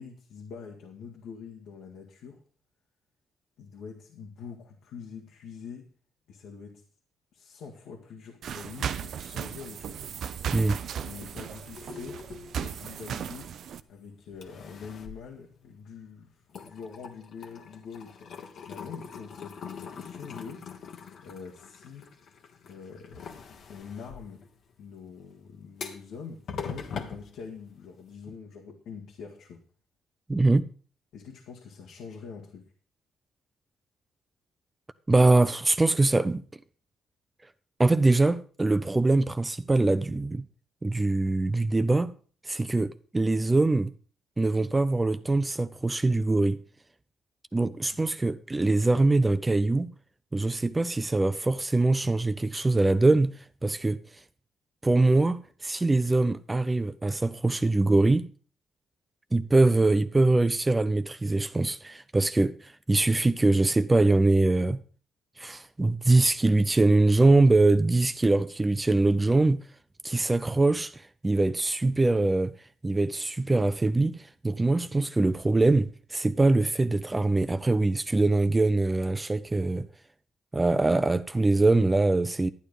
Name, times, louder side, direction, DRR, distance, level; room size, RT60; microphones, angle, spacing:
voice 1, 0.0-2.4 3.6-5.9 6.3-6.8 7.3-10.0 11.0-12.2 12.6-13.6 13.9-18.3 18.7-20.7 21.2-22.1 22.6-23.4 23.7-24.5 24.8-29.6 31.1-32.7 47.9-48.0, left 6 dB, 80° left, 1.9 m, -44 dB
sound 1, 8.4-13.8, right 8 dB, 65° right, 0.6 m, -36 dB
sound 2, 11.4-13.9 14.3-16.1 16.4-28.1, left 6 dB, 60° left, 1.5 m, -43 dB
voice 2, 30.3-30.7 35.1-36.4 37.8-40.4 40.8-42.1 42.5-43.9 44.4-46.6 47.5-49.9 50.3-53.3 53.6-54.0 54.8-58.3 59.3-64.8 65.4-69.6 70.0-72.5 72.8-79.9 80.5-82.5, right 2 dB, 20° right, 0.6 m, -23 dB
11.5 x 9.1 x 5.1 m
cardioid pair, 90°, 0 cm